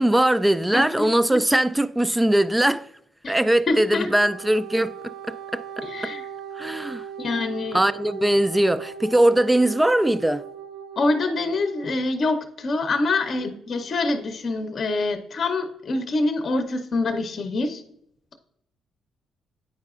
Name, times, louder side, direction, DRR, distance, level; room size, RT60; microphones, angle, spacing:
voice 1, 0.0-2.9 3.3-6.1 6.6-7.1 7.7-10.4, right 1 dB, 10° right, 0.3 m, -21 dB
voice 2, 0.7-1.4 3.2-3.3 3.7-4.1 5.8-6.3 7.2-7.8 11.0-17.8, left 2 dB, 50° left, 0.7 m, -25 dB
Wind instrument woodwind instrument, 3.9-12.0, right 8 dB, 80° right, 0.7 m, -39 dB
9.3 x 4.7 x 2.4 m
cardioid pair, 90°, 0 cm